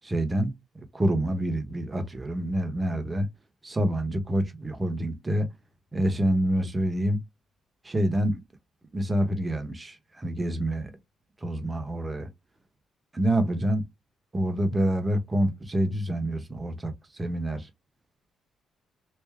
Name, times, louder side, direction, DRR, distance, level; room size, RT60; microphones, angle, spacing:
voice 1, 0.0-0.5 0.9-3.3 3.6-5.5 5.9-7.2 7.8-8.4 8.9-10.9 11.4-12.3 13.1-13.8 14.3-16.9 17.2-17.7, right 1 dB, 20° right, 0.9 m, -27 dB
3.3 x 2.6 x 3.5 m
cardioid pair, 90°, 0 cm